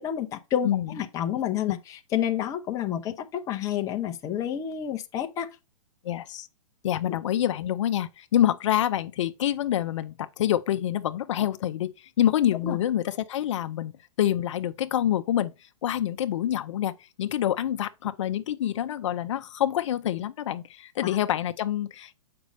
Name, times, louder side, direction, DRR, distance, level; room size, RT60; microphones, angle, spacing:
voice 1, 0.0-5.5 7.1-7.2 12.6-12.8 21.0-21.1, left 10 dB, 20° left, 0.7 m, -29 dB
voice 2, 6.0-6.5 6.8-13.9 14.2-15.5 15.8-16.9 17.2-22.1, left 11 dB, 60° left, 0.6 m, -26 dB
7.8 x 5.2 x 3.3 m
hypercardioid pair, 150°, 17 cm